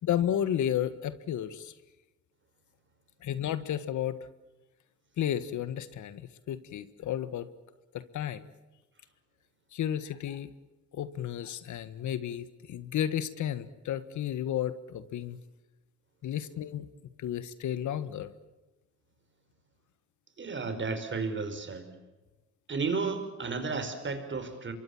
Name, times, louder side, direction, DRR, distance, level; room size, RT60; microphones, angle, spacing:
voice 1, 0.0-1.7 3.2-4.2 5.2-7.5 7.9-8.5 9.7-10.5 10.9-15.4 16.2-16.9 17.2-18.3, left 10 dB, 75° left, 14 dB, 1.6 m, -32 dB
voice 2, 20.4-21.9 22.7-24.7, right 4 dB, 40° right, 8 dB, 5.1 m, -33 dB
27.0 x 23.5 x 7.3 m, 1.1 s
cardioid pair, 90°, 30 cm